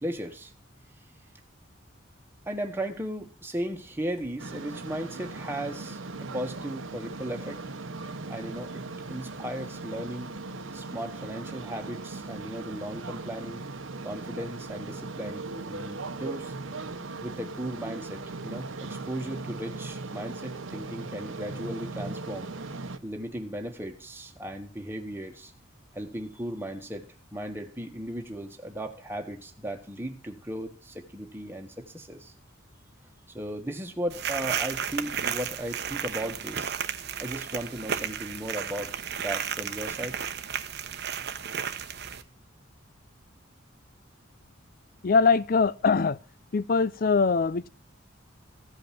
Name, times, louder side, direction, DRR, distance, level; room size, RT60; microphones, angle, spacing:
voice 1, 0.0-0.5 2.4-7.6 8.3-8.8 9.1-10.3 10.7-13.6 14.0-16.5 17.2-22.5 23.0-25.5 25.9-32.3 33.3-36.7 37.2-40.2, right 1 dB, 10° right, 1.6 m, -36 dB
sound 1, 4.4-23.0, right 3 dB, 80° right, 1.1 m, -38 dB
sound 2, 34.1-42.2, right 8 dB, 55° right, 0.9 m, -33 dB
voice 2, 45.0-46.2 46.5-47.7, left 4 dB, 45° left, 0.5 m, -22 dB
15.5 x 5.4 x 5.8 m
head